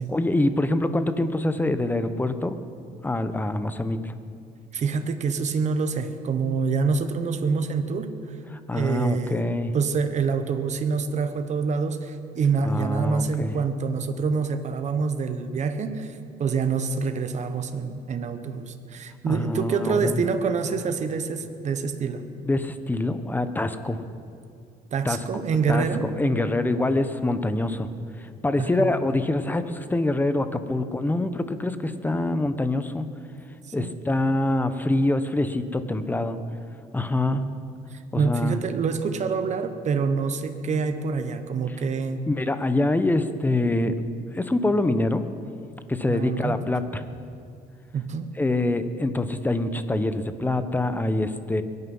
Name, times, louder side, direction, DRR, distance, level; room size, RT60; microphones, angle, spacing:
voice 1, 0.1-2.6 3.0-4.1 8.5-9.7 12.6-13.5 19.3-20.2 22.4-24.0 25.0-25.2 25.7-25.8 26.2-27.9 28.2-33.1 33.7-36.4 36.9-37.4 38.1-38.6 42.3-43.9 44.3-45.2 45.9-47.0 48.4-51.6, left 2 dB, 10° left, 11 dB, 0.8 m, -25 dB
voice 2, 4.7-8.4 8.7-9.5 9.7-22.2 24.9-26.1 28.6-28.9 33.8-33.9 37.3-37.6 37.9-42.3 44.9-45.0 46.1-46.6 47.9-48.3, right 5 dB, 45° right, 8 dB, 1.1 m, -26 dB
22.5 x 9.6 x 5.6 m, 2.4 s
cardioid pair, 110°, 17 cm